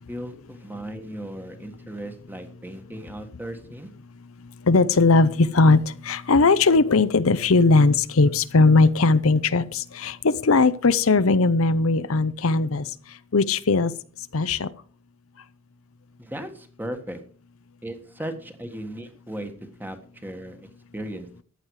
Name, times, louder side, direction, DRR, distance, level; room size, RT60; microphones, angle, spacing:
voice 1, 0.1-3.9 16.2-17.2 17.8-19.5 19.8-20.6 20.9-21.4, right 1 dB, 10° right, 7 dB, 1.5 m, -36 dB
voice 2, 4.6-13.9 14.3-14.7, left 3 dB, 65° left, 14 dB, 0.7 m, -19 dB
14.5 x 9.8 x 4.8 m, 0.41 s
head